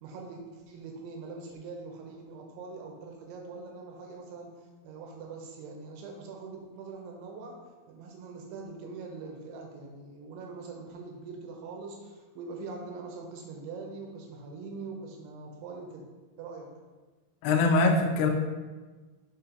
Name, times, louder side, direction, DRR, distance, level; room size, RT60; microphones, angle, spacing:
voice 1, 0.0-4.5 4.8-7.6 7.9-16.1 16.4-16.7, right 4 dB, 85° right, 1 dB, 3.2 m, -43 dB
voice 2, 17.4-18.3, left 3 dB, 75° left, 2 dB, 2.6 m, -23 dB
6.9 x 4.3 x 5.3 m, 1.3 s
omnidirectional pair, 5.5 m